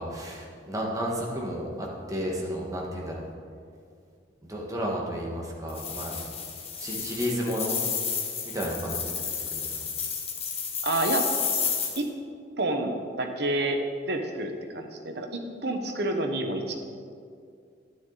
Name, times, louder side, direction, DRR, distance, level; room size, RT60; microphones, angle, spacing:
voice 1, 0.0-3.2 4.4-6.2 6.8-7.8 8.5-9.1 9.5-9.7, equal, 20° right, -3 dB, 1.7 m, -32 dB
sound 1, 5.7-12.0, left 6 dB, 35° left, 1.4 m, -31 dB
voice 2, 10.8-11.3 12.0-12.1 12.6-13.8 14.0-16.8, right 2 dB, 65° right, 4 dB, 1.1 m, -29 dB
12.0 x 9.8 x 4.1 m, 2.3 s
head